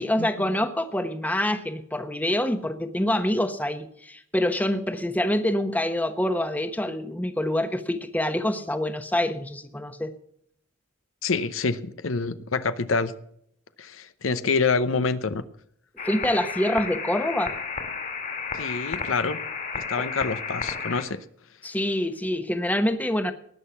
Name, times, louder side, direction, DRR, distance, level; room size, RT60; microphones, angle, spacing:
voice 1, 0.0-10.1 16.0-17.5 20.0-20.1 21.6-23.3, left 1 dB, 10° left, 8 dB, 0.9 m, -26 dB
voice 2, 11.2-13.1 13.8-15.4 18.5-19.4 19.8-21.2, left 4 dB, 80° left, 13 dB, 0.8 m, -26 dB
sound 1, 16.0-21.0, left 5 dB, 40° left, 2.6 m, -32 dB
19.0 x 6.5 x 6.9 m, 0.70 s
head